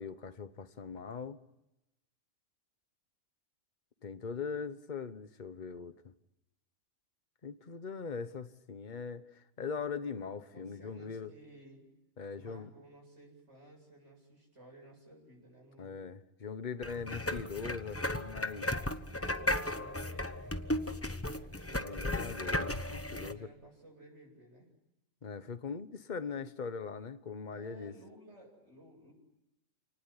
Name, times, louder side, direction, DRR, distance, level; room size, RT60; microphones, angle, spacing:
voice 1, 0.0-1.4 4.0-6.1 7.4-11.3 12.2-12.7 15.8-18.7 21.7-23.5 25.2-27.9, left 5 dB, 35° left, 11 dB, 1.3 m, -41 dB
voice 2, 10.5-11.9 12.3-16.0 18.9-21.8 23.1-24.7 27.5-29.1, right 1 dB, 60° right, 0 dB, 8.3 m, -56 dB
sound 1, 16.8-23.3, left 1 dB, 10° left, 0.9 m, -35 dB
28.5 x 19.0 x 9.9 m, 0.92 s
omnidirectional pair, 1.3 m